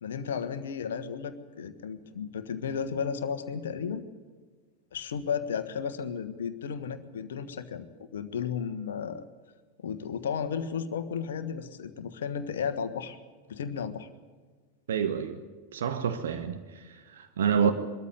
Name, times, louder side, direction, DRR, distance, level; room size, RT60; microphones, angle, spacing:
voice 1, 0.0-4.0 4.9-9.3 9.8-13.2 13.5-14.1 17.6-17.7, left 7 dB, 60° left, 10 dB, 1.4 m, -34 dB
voice 2, 14.9-15.4 15.7-17.7, right 8 dB, 60° right, 9 dB, 1.2 m, -28 dB
22.0 x 14.0 x 9.7 m, 1.5 s
figure-of-eight pair, 90°, 0 cm